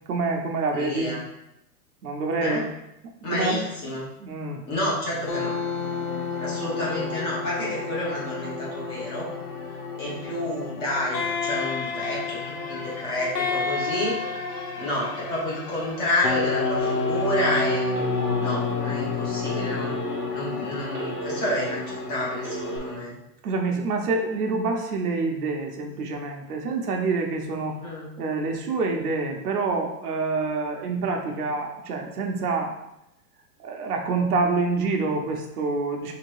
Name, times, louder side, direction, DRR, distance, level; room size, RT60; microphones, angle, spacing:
voice 1, 0.1-1.1 2.0-2.7 3.3-4.6 23.4-27.8 28.2-32.7 33.6-36.1, right 3 dB, 70° right, 2 dB, 1.0 m, -27 dB
voice 2, 0.7-1.2 2.4-2.6 3.2-4.0 4.7-5.6 6.4-9.3 10.0-14.2 14.5-17.9 18.4-19.9 20.3-23.1 27.8-28.2 31.2-31.5, left 1 dB, 20° left, -6 dB, 0.9 m, -29 dB
sound 1, 5.1-23.0, left 4 dB, 80° left, 1.2 m, -30 dB
Telephone, 16.8-17.5 17.9-18.7 19.4-20.2 20.6-21.7 22.4-22.8, right 4 dB, 15° right, 0.6 m, -35 dB
3.6 x 2.9 x 4.7 m, 0.84 s
supercardioid pair, 175°, 47 cm